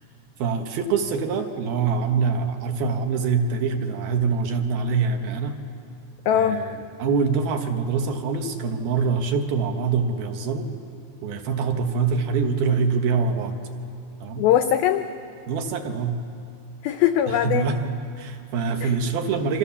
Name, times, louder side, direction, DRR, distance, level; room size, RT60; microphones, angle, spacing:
voice 1, 0.4-5.6 6.3-10.7 11.2-13.6 14.2-14.5 15.5-16.2 17.3-19.6, right 5 dB, 65° right, 5 dB, 3.0 m, -24 dB
voice 2, 6.3-6.6 14.4-15.0 16.8-17.7 18.8-18.9, left 10 dB, 90° left, 8 dB, 2.1 m, -21 dB
29.0 x 26.0 x 7.2 m, 2.5 s
omnidirectional pair, 5.2 m